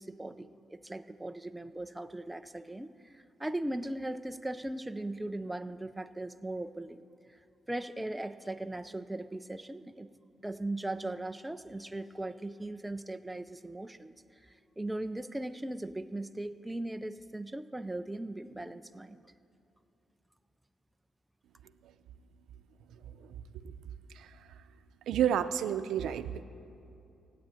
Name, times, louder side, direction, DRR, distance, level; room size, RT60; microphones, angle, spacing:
voice 1, 0.0-7.4 7.7-10.1 10.4-14.1 14.4-19.3, right 1 dB, 5° right, 9 dB, 0.3 m, -39 dB
voice 2, 25.1-26.4, right 9 dB, 85° right, 11 dB, 0.6 m, -31 dB
16.5 x 8.5 x 8.8 m, 2.7 s
cardioid pair, 175°, 0 cm